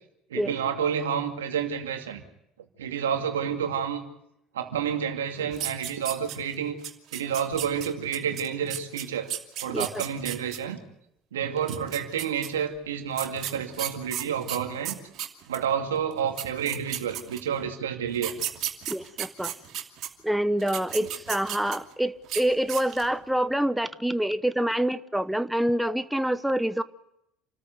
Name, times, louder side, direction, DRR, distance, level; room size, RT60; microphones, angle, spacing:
voice 1, 0.3-2.2 2.8-4.0 4.5-6.8 7.1-9.3 9.6-10.8 11.3-15.0 15.5-18.4, right 8 dB, 85° right, 2.5 m, -29 dB
sound 1, 5.5-6.5 6.8-10.6 11.6-12.5 13.2-15.6 16.1-16.2 16.4-17.6 18.1-20.1 20.6-21.9 22.2-22.4 22.7-23.1, right 11 dB, 55° right, 2.7 m, -34 dB
voice 2, 18.9-19.6 20.2-26.8, right 1 dB, 5° right, 0.9 m, -26 dB
28.5 x 14.0 x 9.4 m
hypercardioid pair, 70°, 0 cm